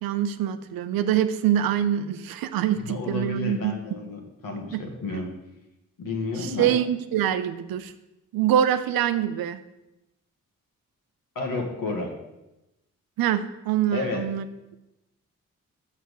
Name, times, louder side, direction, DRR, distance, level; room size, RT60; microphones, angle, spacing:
voice 1, 0.0-3.7 4.7-4.8 6.4-7.9 8.3-9.6 13.2-14.4, right 10 dB, 85° right, 11 dB, 0.6 m, -24 dB
voice 2, 2.8-5.3 6.0-6.7 11.4-12.1 13.9-14.2, left 3 dB, 70° left, 2 dB, 1.8 m, -31 dB
6.0 x 5.8 x 6.5 m, 0.95 s
supercardioid pair, 45°, 35 cm